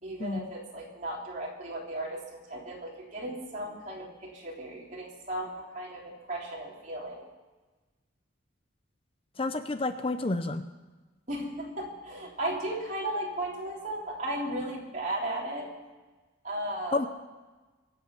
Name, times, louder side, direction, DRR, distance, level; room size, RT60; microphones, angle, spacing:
voice 1, 0.0-7.2 11.3-15.7 16.4-17.1, right 1 dB, 40° right, -2 dB, 3.5 m, -35 dB
voice 2, 9.4-10.6 16.9-17.1, left 2 dB, 30° left, 10 dB, 0.5 m, -29 dB
23.0 x 8.3 x 7.1 m, 1.3 s
head